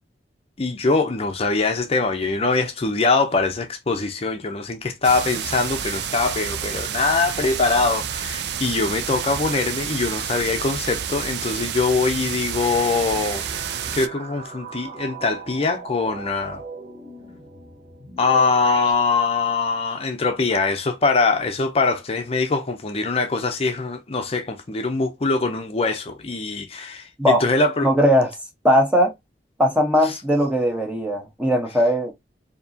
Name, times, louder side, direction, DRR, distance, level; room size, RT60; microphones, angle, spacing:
voice 1, 0.6-13.4 13.9-16.6 18.2-27.9 30.0-30.1, left 3 dB, 35° left, 0.6 m, -23 dB
sound 1, 5.0-14.1, right 8 dB, 65° right, 0.4 m, -29 dB
sound 2, 12.6-18.9, right 3 dB, 35° right, 2.3 m, -39 dB
voice 2, 27.8-28.3 28.6-29.1 29.6-32.1, equal, 10° right, 1.0 m, -19 dB
4.6 x 2.8 x 2.7 m
head